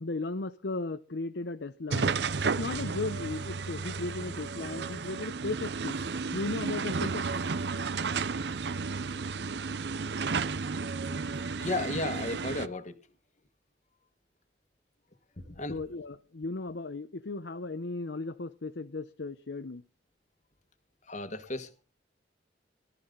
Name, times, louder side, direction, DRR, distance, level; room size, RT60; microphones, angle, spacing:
voice 1, 0.0-2.1 2.4-6.0 6.3-7.3 15.7-19.8, left 3 dB, 75° left, 0.8 m, -36 dB
sound 1, 1.9-12.7, right 4 dB, 70° right, 0.6 m, -33 dB
voice 2, 11.6-13.0 15.4-15.8 21.1-21.8, left 2 dB, 40° left, 1.6 m, -34 dB
18.5 x 12.5 x 3.9 m
head